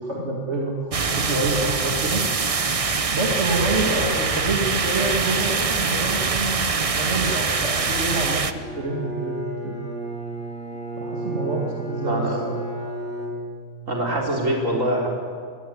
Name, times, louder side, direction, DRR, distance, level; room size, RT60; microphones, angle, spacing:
voice 1, 0.0-2.2 3.1-9.8 11.0-12.5, right 2 dB, 60° right, -1 dB, 2.5 m, -27 dB
sound 1, 0.9-8.5, right 4 dB, 30° right, 0.7 m, -24 dB
Bowed string instrument, 8.5-14.0, right 2 dB, 5° left, 2.5 m, -32 dB
voice 2, 12.0-12.4 13.9-15.1, right 1 dB, 75° right, -1 dB, 4.4 m, -24 dB
21.0 x 17.0 x 9.5 m, 2.1 s
omnidirectional pair, 1.3 m